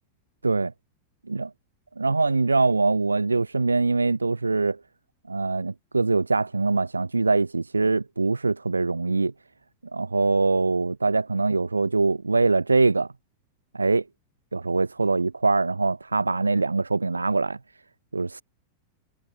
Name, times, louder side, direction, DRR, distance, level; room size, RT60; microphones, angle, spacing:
voice 1, 2.0-4.8 5.3-9.3 9.9-13.1 13.7-14.0 14.5-17.6 18.1-18.4, right 3 dB, 80° right, 1.5 m, -23 dB
figure-of-eight pair, 90°, 0 cm